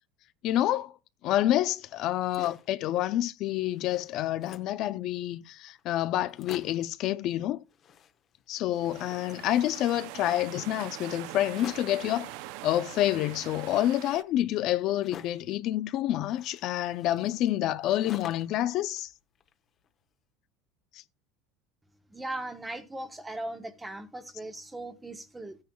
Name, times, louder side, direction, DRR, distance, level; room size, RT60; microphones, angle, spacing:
voice 1, 0.4-0.9 1.2-7.6 8.5-12.3 12.6-19.1, left 13 dB, 50° left, 0.5 m, -28 dB
sound 1, 2.0-2.8 3.3-3.4 3.6-4.8 5.5-5.6 5.8-5.9 6.2-6.9 7.7-8.5 8.7-10.0 11.4-12.1 13.0-15.5 16.3-18.6 19.0-19.9, left 8 dB, 35° left, 0.9 m, -49 dB
sound 2, 8.8-14.2, right 15 dB, 70° right, 0.5 m, -43 dB
voice 2, 22.1-25.6, right 1 dB, 10° right, 0.9 m, -38 dB
14.0 x 9.5 x 2.3 m
supercardioid pair, 145°, 0 cm